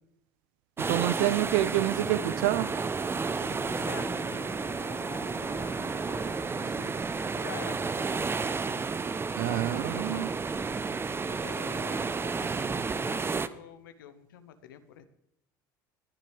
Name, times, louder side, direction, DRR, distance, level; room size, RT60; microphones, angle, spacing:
sound 1, 0.8-13.5, right 4 dB, 20° right, 0.7 m, -31 dB
voice 1, 0.8-2.8 9.4-10.3, right 14 dB, 70° right, 16 dB, 0.6 m, -27 dB
sound 2, 3.1-9.7, left 6 dB, 40° left, 1.3 m, -49 dB
voice 2, 3.5-4.6 5.4-7.0 7.3-8.5 9.4-10.9 11.2-15.1, left 9 dB, 85° left, 10 dB, 1.0 m, -48 dB
20.0 x 10.5 x 3.3 m, 0.79 s
hypercardioid pair, 75°, 11 cm